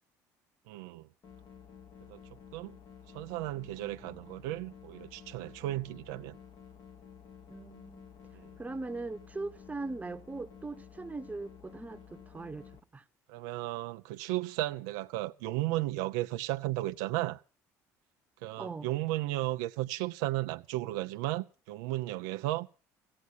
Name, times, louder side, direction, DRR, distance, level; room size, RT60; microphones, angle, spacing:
voice 1, 0.7-1.1 2.1-2.2 2.5-2.8 3.1-6.4 8.3-8.5 13.3-17.4 18.4-22.7, right 17 dB, 85° right, 0.7 m, -34 dB
sound 1, 1.2-12.8, left 7 dB, 50° left, 2.2 m, -53 dB
voice 2, 7.5-8.1 8.6-13.0 18.6-18.9, right 3 dB, 20° right, 1.2 m, -40 dB
15.5 x 9.6 x 8.3 m
supercardioid pair, 80°, 8 cm